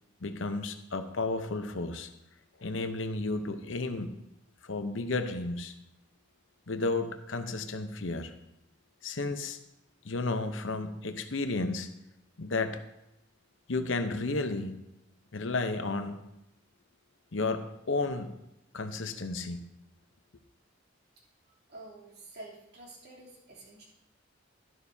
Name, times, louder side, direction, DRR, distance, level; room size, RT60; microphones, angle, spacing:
voice 1, 0.2-2.1 2.6-4.2 4.6-5.7 6.7-8.3 9.0-9.6 10.0-11.9 12.4-12.8 13.7-14.8 15.3-16.2 17.3-18.3 18.7-19.6, left 3 dB, 75° left, 8 dB, 0.9 m, -32 dB
voice 2, 21.1-23.8, right 2 dB, 60° right, -4 dB, 3.1 m, -49 dB
12.0 x 11.5 x 2.8 m, 0.85 s
head